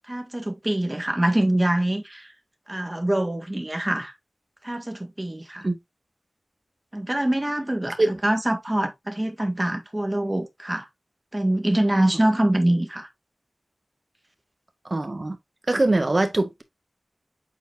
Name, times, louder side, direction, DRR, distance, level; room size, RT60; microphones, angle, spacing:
voice 1, 0.1-2.3 2.7-4.1 4.6-5.7 6.9-10.9 11.3-13.1, right 1 dB, 25° right, 1.9 m, -24 dB
voice 2, 14.8-15.4 15.7-16.6, right 2 dB, 45° right, 1.6 m, -22 dB
8.3 x 4.3 x 2.7 m
wide cardioid pair, 50°, 0 cm